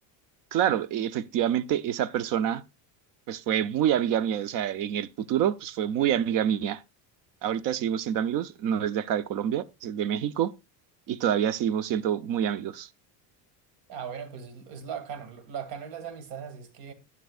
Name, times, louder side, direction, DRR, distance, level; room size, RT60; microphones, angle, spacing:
voice 1, 0.5-2.6 3.3-6.8 7.4-10.5 11.1-12.9, right 10 dB, 45° right, 0.7 m, -27 dB
voice 2, 13.9-16.9, right 7 dB, 70° right, 2.5 m, -38 dB
11.5 x 9.8 x 2.4 m
cardioid pair, 160°, 45 cm